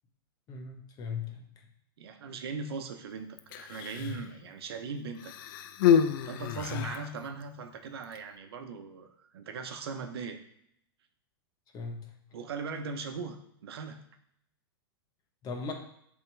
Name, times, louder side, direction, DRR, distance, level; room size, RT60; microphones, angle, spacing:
voice 1, 0.5-1.4 4.0-4.2 6.7-6.8 11.7-12.1 15.4-15.7, left 5 dB, 30° left, 4 dB, 1.1 m, -37 dB
voice 2, 2.0-5.3 6.2-10.4 12.3-14.0, right 4 dB, 80° right, 7 dB, 0.9 m, -39 dB
Human voice, 3.4-4.3 5.2-7.1 8.0-8.2, left 8 dB, 55° left, 0.5 m, -28 dB
7.8 x 3.6 x 3.3 m, 0.72 s
hypercardioid pair, 130°, 13 cm